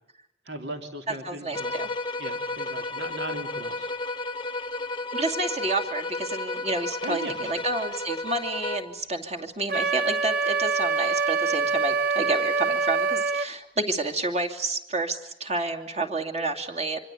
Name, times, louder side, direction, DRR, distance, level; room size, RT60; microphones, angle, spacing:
voice 1, 0.4-1.8 2.2-3.9 7.0-7.6, right 1 dB, 80° right, 5 dB, 3.0 m, -38 dB
voice 2, 1.2-1.9 5.1-17.0, right 2 dB, 40° right, 3 dB, 2.6 m, -30 dB
sound 1, 1.5-9.0, left 2 dB, 30° left, 0.9 m, -32 dB
Wind instrument woodwind instrument, 9.7-13.5, right 4 dB, 55° right, 1.0 m, -25 dB
25.5 x 25.0 x 8.4 m, 0.79 s
head